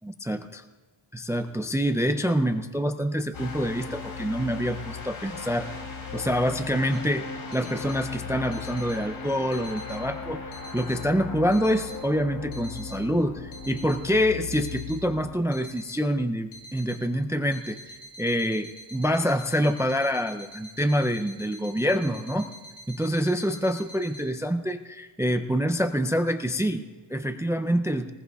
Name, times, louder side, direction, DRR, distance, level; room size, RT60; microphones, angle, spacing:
voice 1, 0.0-0.6 1.1-5.8 6.1-7.3 7.5-10.4 10.7-22.5 22.9-28.1, equal, 5° right, 8 dB, 0.3 m, -26 dB
sound 1, 3.3-15.4, left 5 dB, 70° left, 4.0 m, -38 dB
sound 2, 6.9-24.2, equal, 85° left, 3.6 m, -47 dB
21.0 x 19.5 x 2.3 m, 1.2 s
cardioid pair, 125°, 50 cm